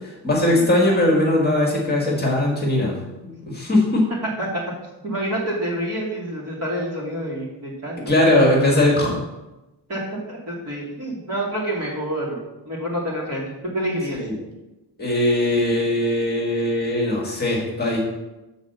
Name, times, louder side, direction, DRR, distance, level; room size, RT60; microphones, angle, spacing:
voice 1, 0.0-3.0 3.2-4.1 8.1-9.2 14.2-14.3 15.0-18.0, left 1 dB, 25° left, -2 dB, 1.7 m, -20 dB
voice 2, 5.0-8.1 9.9-10.0 10.3-12.4 12.7-13.4 13.7-14.2, right 1 dB, 35° right, -5 dB, 2.5 m, -27 dB
7.5 x 4.1 x 6.6 m, 1.0 s
wide cardioid pair, 160°, 42 cm